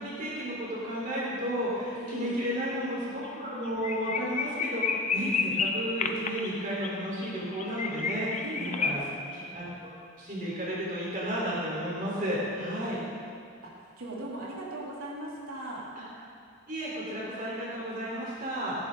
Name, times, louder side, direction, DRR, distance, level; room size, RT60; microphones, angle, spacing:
voice 1, 0.0-9.0 9.3-13.0 16.7-18.8, equal, 40° right, -6 dB, 3.8 m, -33 dB
voice 2, 1.9-2.5 8.4-9.0 13.6-15.8, right 1 dB, 80° right, -5 dB, 3.0 m, -39 dB
sound 1, 2.1-2.5 2.7-2.9 3.2-3.3 3.6-8.9, left 5 dB, 35° left, 0.6 m, -31 dB
18.0 x 10.5 x 3.9 m, 2.3 s
head